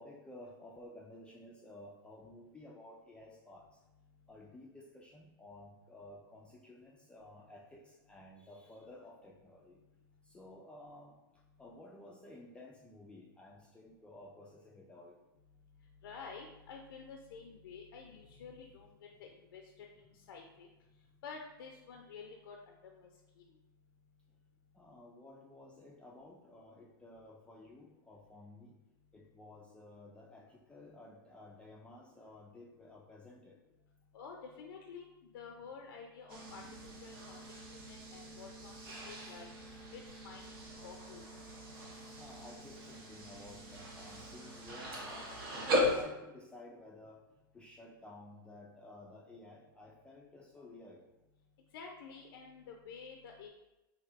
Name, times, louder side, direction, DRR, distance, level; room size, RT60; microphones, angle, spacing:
voice 1, 0.0-3.7 4.3-9.8 10.2-11.2 11.6-15.2 24.7-28.7 29.1-33.6 42.2-47.2 47.5-51.1, left 1 dB, 10° left, -3 dB, 0.3 m, -54 dB
voice 2, 16.0-19.9 20.1-20.7 21.2-22.6 22.9-23.1 23.4-23.5 34.1-35.0 35.3-36.6 37.0-38.7 39.0-39.5 39.9-40.5 40.8-41.2 51.7-53.5, left 5 dB, 75° left, 2 dB, 0.4 m, -50 dB
sound 1, 36.3-46.0, left 1 dB, 75° right, 0.9 m, -39 dB
3.2 x 2.7 x 2.5 m, 0.99 s
hypercardioid pair, 115°, 12 cm